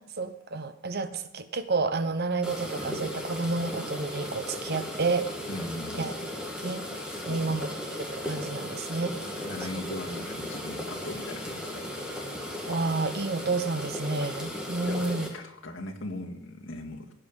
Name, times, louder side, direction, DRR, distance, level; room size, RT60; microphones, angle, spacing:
voice 1, 0.0-5.3 6.0-6.2 6.6-6.9 7.3-7.7 8.0-9.2 12.7-15.3, right 3 dB, 50° right, 11 dB, 0.9 m, -30 dB
sound 1, 2.4-15.3, left 1 dB, 5° right, 2.4 m, -36 dB
voice 2, 5.5-6.1 7.1-7.6 9.2-11.9 14.8-17.1, left 1 dB, 70° left, 1 dB, 1.9 m, -39 dB
18.0 x 8.7 x 5.4 m, 0.90 s
head